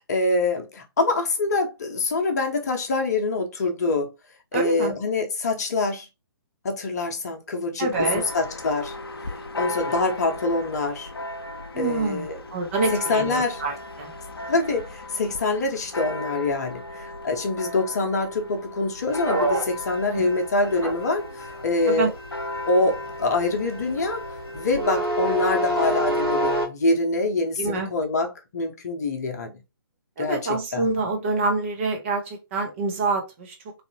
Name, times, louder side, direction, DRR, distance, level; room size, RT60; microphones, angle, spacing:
voice 1, 0.1-4.1 4.5-6.1 6.6-8.9 9.6-11.1 11.8-12.4 12.9-13.6 14.5-22.1 22.7-24.2 24.5-29.5 30.2-30.9, left 3 dB, 45° left, 0.8 m, -25 dB
voice 2, 4.5-5.0 7.8-8.2 11.7-12.2 12.5-14.1 20.1-20.3 21.9-22.1 27.6-27.9 30.2-33.5, right 3 dB, 30° right, 1.0 m, -26 dB
Church bell, 7.9-24.9, left 2 dB, 75° left, 0.6 m, -36 dB
sound 1, 19.1-26.7, right 1 dB, 80° right, 1.5 m, -27 dB
3.3 x 2.5 x 2.7 m
figure-of-eight pair, 135°, 13 cm